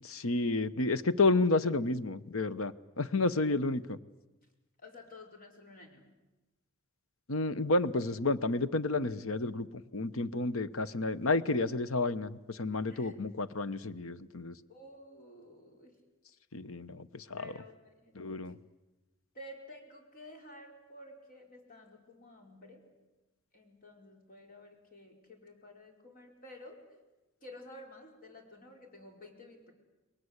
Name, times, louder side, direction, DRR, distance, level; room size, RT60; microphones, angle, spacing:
voice 1, 0.1-4.0 7.3-9.7 9.9-14.5 16.5-17.6 18.2-18.6, left 2 dB, 75° left, 14 dB, 1.0 m, -31 dB
voice 2, 4.8-6.1 12.9-13.1 14.7-16.0 17.4-18.5 19.3-22.8 23.5-26.8 27.4-29.7, left 1 dB, 40° left, 2 dB, 5.0 m, -52 dB
29.5 x 22.0 x 8.1 m, 1.1 s
head